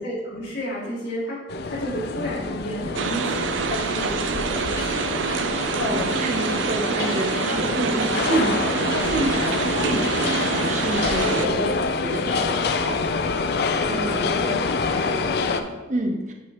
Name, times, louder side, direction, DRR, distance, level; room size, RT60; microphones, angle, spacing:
voice 1, 0.0-5.4 14.4-14.5 14.8-15.7, equal, 80° left, -9 dB, 1.6 m, -33 dB
sound 1, 1.5-15.6, left 4 dB, 60° left, 0.4 m, -26 dB
sound 2, 2.9-11.5, right 5 dB, 85° right, 0.4 m, -26 dB
voice 2, 5.8-13.0 13.9-15.0 15.9-16.3, right 2 dB, 40° right, 3 dB, 0.7 m, -28 dB
9.2 x 4.5 x 2.9 m, 1.1 s
head